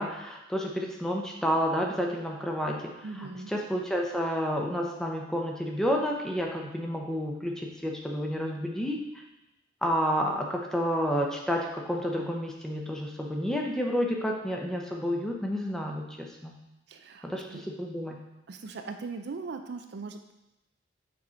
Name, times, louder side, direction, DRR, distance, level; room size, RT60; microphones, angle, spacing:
voice 1, 0.0-2.9 3.2-9.0 9.8-16.6 17.2-18.2, equal, 5° left, 0 dB, 0.7 m, -30 dB
voice 2, 3.0-3.5 16.9-17.6 18.5-20.3, right 4 dB, 60° right, 6 dB, 0.5 m, -39 dB
6.2 x 4.3 x 4.4 m, 0.92 s
head